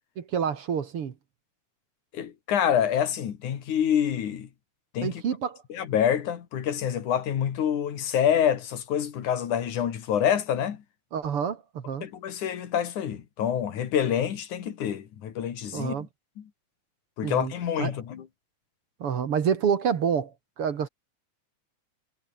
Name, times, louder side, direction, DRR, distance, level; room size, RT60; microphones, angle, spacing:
voice 1, 0.2-1.1 5.0-5.6 11.1-12.1 15.7-16.1 17.2-17.5 17.8-17.9 19.0-20.9, right 7 dB, 55° right, 2.4 m, -28 dB
voice 2, 2.1-4.5 4.9-5.2 5.7-10.8 12.0-16.1 16.4-16.5 17.2-18.3, left 9 dB, 90° left, 3.5 m, -27 dB
omnidirectional pair, 3.4 m